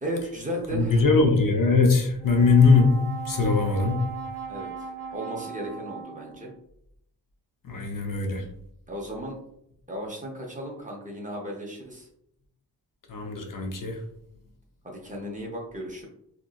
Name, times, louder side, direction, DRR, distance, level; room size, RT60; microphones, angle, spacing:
voice 1, 0.0-1.0 4.5-4.7 5.1-6.5 8.9-9.4 9.9-12.1 14.8-16.1, equal, 20° right, -2 dB, 0.5 m, -35 dB
voice 2, 0.7-4.1 7.7-8.4 13.1-14.0, left 4 dB, 55° left, 3 dB, 0.5 m, -21 dB
Brass instrument, 2.2-6.6, right 6 dB, 75° right, 0.8 m, -38 dB
2.9 x 2.5 x 2.4 m, 0.75 s
wide cardioid pair, 155°, 41 cm